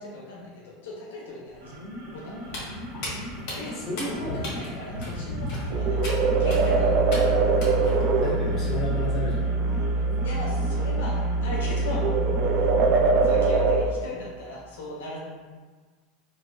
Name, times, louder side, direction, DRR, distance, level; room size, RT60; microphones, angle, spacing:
voice 1, 0.0-1.8 2.1-2.6 3.5-6.1 6.4-6.9 10.2-12.1 12.5-12.7 13.2-15.2, left 2 dB, 85° left, -4 dB, 0.7 m, -38 dB
sound 1, 1.5-13.5, equal, 90° right, 1.1 m, -40 dB
Walk footsteps, 2.4-8.0, left 1 dB, 60° left, 1.3 m, -36 dB
voice 2, 3.7-4.5 8.2-9.5, left 1 dB, 30° left, -9 dB, 1.5 m, -32 dB
sound 2, 5.7-13.8, right 3 dB, 50° right, 0.4 m, -23 dB
4.0 x 2.6 x 2.4 m, 1.5 s
supercardioid pair, 120°, 0 cm